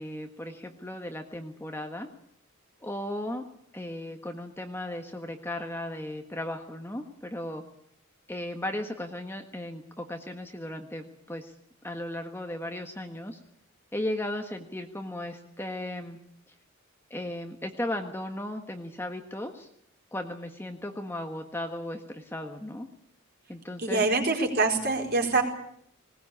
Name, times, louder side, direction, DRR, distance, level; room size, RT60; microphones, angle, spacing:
voice 1, 0.0-2.1 2.8-3.4 3.7-7.6 8.3-11.5 11.8-13.4 13.9-16.2 17.1-19.7 20.1-22.9 23.5-24.0, left 1 dB, 10° left, 4 dB, 1.5 m, -36 dB
voice 2, 23.8-25.4, right 3 dB, 45° right, 2 dB, 4.7 m, -25 dB
20.0 x 19.5 x 8.6 m, 0.70 s
head